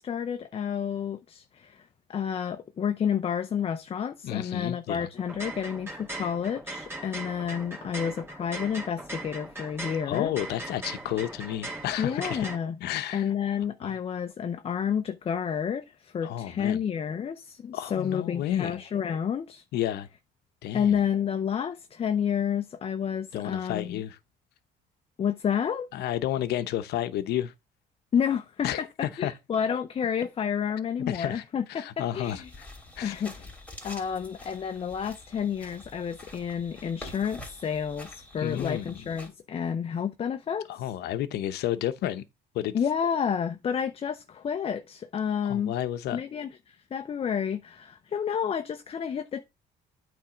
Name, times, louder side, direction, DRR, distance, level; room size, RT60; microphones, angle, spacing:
voice 1, 0.0-10.3 12.0-12.8 13.1-19.6 20.7-24.0 25.2-25.9 28.1-32.5 33.0-33.5 33.8-40.7 42.7-45.7 46.1-49.4, left 8 dB, 35° left, 0.6 m, -30 dB
voice 2, 4.2-5.1 10.1-12.5 12.8-13.3 13.8-13.9 16.2-16.8 17.7-18.8 19.7-20.1 20.6-21.0 23.3-24.2 25.9-27.5 28.6-29.3 31.1-31.4 31.7-32.4 33.0-33.2 38.4-39.1 40.7-42.2 42.5-42.7 45.4-46.2, left 12 dB, 75° left, 0.8 m, -31 dB
sound 1, 5.2-12.6, right 2 dB, 15° right, 2.2 m, -39 dB
sound 2, 32.2-39.3, left 1 dB, 10° left, 2.8 m, -46 dB
8.7 x 3.5 x 5.0 m
cardioid pair, 110°, 17 cm